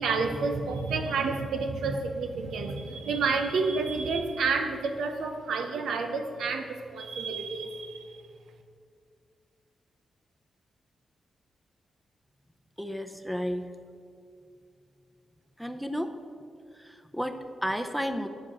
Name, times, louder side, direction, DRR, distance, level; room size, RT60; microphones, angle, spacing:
voice 1, 0.0-8.2, right 4 dB, 80° right, 5 dB, 0.7 m, -30 dB
voice 2, 12.8-13.7 15.6-16.1 16.7-18.3, equal, ahead, 8 dB, 0.7 m, -32 dB
7.7 x 5.0 x 7.3 m, 2.2 s
supercardioid pair, 55°, 0 cm